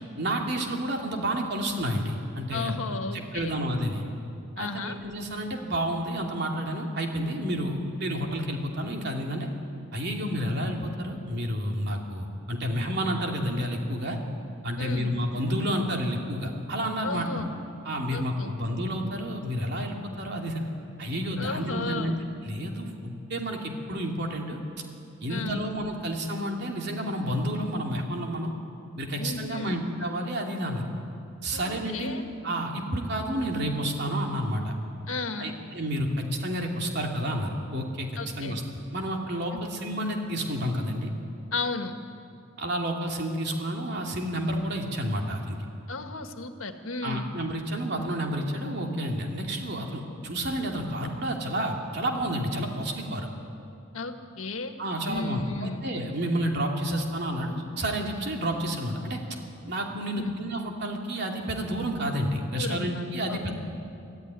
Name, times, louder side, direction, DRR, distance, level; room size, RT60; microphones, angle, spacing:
voice 1, 0.2-2.8 3.1-4.0 4.6-9.5 9.9-14.2 14.6-17.3 17.8-20.6 21.0-24.6 25.2-28.5 29.0-30.9 31.4-34.7 35.4-38.1 38.4-38.6 38.9-41.1 42.6-45.6 47.0-53.3 54.8-59.2 59.7-63.6, equal, 55° right, 1 dB, 2.8 m, -30 dB
voice 2, 2.5-3.6 4.6-5.0 14.8-15.1 17.0-17.5 18.1-18.5 21.4-22.2 25.3-25.7 29.2-29.8 31.5-32.2 35.1-35.6 38.2-38.6 39.5-39.6 41.5-42.0 45.9-47.3 53.9-54.8 55.1-55.8 60.1-60.4 62.5-63.6, left 3 dB, 90° left, 6 dB, 1.6 m, -34 dB
24.0 x 14.0 x 9.8 m, 2.6 s
head